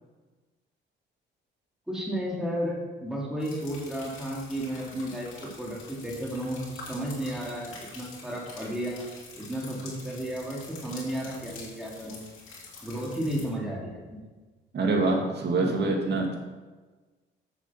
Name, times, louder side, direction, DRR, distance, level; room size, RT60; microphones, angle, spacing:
voice 1, 1.9-9.1 9.4-12.2 12.8-14.2, equal, 5° right, -4 dB, 2.6 m, -33 dB
sound 1, 3.4-13.5, left 3 dB, 85° left, 2.7 m, -46 dB
voice 2, 14.7-16.3, right 3 dB, 55° right, 1 dB, 2.2 m, -25 dB
7.3 x 7.2 x 5.6 m, 1.3 s
cardioid pair, 90°, 20 cm